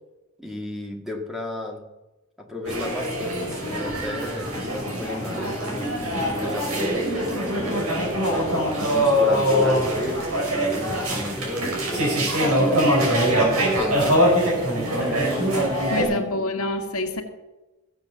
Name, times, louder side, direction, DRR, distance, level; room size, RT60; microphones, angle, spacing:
voice 1, 0.4-1.8 2.4-8.1 8.8-15.2 15.8-16.2, left 1 dB, ahead, 1 dB, 1.9 m, -34 dB
sound 1, 2.6-16.0, equal, 75° right, 5.5 m, -23 dB
voice 2, 15.9-17.2, left 2 dB, 75° left, 4 dB, 1.9 m, -26 dB
15.5 x 7.9 x 6.9 m, 1.1 s
head